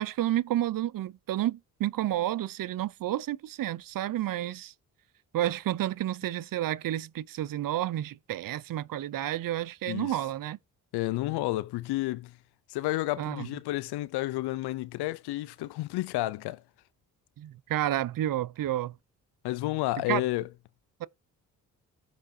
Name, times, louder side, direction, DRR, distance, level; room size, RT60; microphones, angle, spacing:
voice 1, 0.0-4.7 5.3-10.6 13.2-13.5 17.4-18.9 20.1-20.2 21.0-21.1, right 13 dB, 55° right, 0.7 m, -30 dB
voice 2, 9.9-10.2 10.9-12.4 12.7-16.6 19.4-20.5, left 17 dB, 75° left, 0.6 m, -31 dB
15.0 x 5.0 x 2.8 m
supercardioid pair, 50°, 40 cm